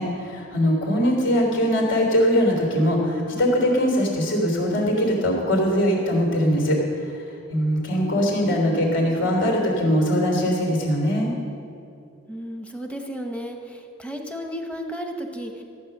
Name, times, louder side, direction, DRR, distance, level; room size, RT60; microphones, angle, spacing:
voice 1, 0.0-7.1 7.5-11.3, equal, 65° left, 0 dB, 3.3 m, -21 dB
voice 2, 12.3-15.6, equal, 5° left, 3 dB, 1.1 m, -33 dB
14.5 x 9.4 x 6.6 m, 2.6 s
head